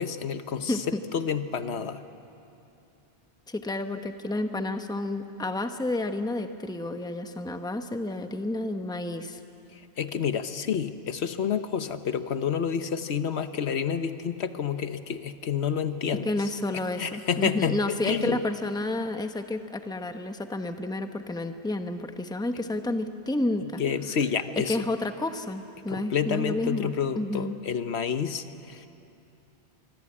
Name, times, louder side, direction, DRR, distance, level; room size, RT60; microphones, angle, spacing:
voice 1, 0.0-0.8 1.1-2.0 10.0-16.3 17.0-17.8 18.0-18.4 23.8-24.8 25.9-28.9, left 7 dB, 75° left, 10 dB, 1.2 m, -29 dB
voice 2, 0.7-1.0 3.5-9.4 16.2-23.8 24.6-27.5, left 2 dB, 5° left, 7 dB, 0.9 m, -30 dB
25.5 x 23.5 x 8.6 m, 2.8 s
omnidirectional pair, 1.1 m